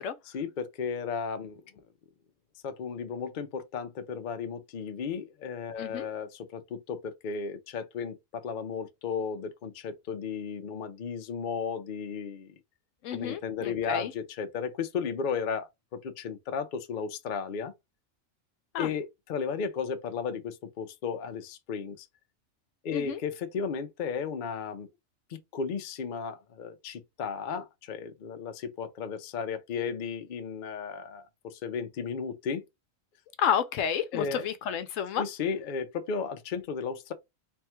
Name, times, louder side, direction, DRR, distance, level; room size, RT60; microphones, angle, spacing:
voice 1, 0.3-1.6 2.6-12.5 13.1-17.7 18.8-22.1 22.8-24.9 25.3-32.6 34.1-34.4 35.2-37.1, left 6 dB, 50° left, 0.6 m, -34 dB
voice 2, 13.0-14.1 18.7-18.9 22.9-23.2 33.4-35.2, left 8 dB, 75° left, 0.9 m, -30 dB
3.5 x 2.3 x 4.4 m
omnidirectional pair, 1.4 m